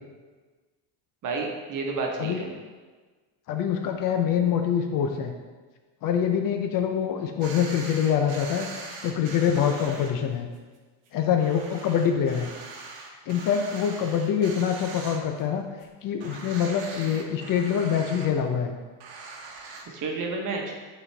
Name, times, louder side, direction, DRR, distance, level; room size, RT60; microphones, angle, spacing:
voice 1, 1.2-2.5 19.9-20.7, right 3 dB, 40° right, 1 dB, 1.1 m, -30 dB
voice 2, 3.5-5.3 6.0-8.7 9.0-10.5 11.1-12.5 13.3-15.6 16.0-18.8, left 8 dB, 45° left, 4 dB, 0.5 m, -25 dB
sound 1, 7.4-10.1 10.6-10.7 11.1-11.2 11.4-15.5 15.8-15.9 16.2-18.3 19.0-19.8, right 4 dB, 70° right, 1.2 m, -41 dB
7.2 x 4.1 x 3.3 m, 1.4 s
cardioid pair, 130°, 49 cm